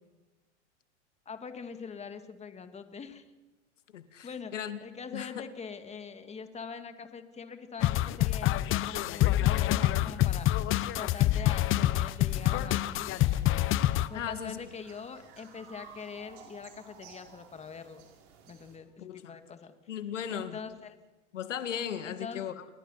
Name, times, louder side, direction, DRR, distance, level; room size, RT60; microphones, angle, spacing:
voice 1, 1.3-3.2 4.2-4.5 4.8-10.5 10.9-13.6 14.1-18.1 18.5-19.7 20.3-21.0 22.1-22.7, left 6 dB, 20° left, 8 dB, 2.1 m, -43 dB
voice 2, 3.9-4.8 5.1-5.4 14.1-14.6 19.0-19.4 19.9-20.6 21.3-22.6, left 9 dB, 85° left, 11 dB, 1.9 m, -37 dB
sound 1, 7.8-14.1, left 14 dB, 35° left, 0.9 m, -26 dB
sound 2, 11.4-18.8, right 6 dB, 60° right, 6.5 m, -55 dB
29.5 x 20.5 x 5.7 m, 1.1 s
hypercardioid pair, 110°, 36 cm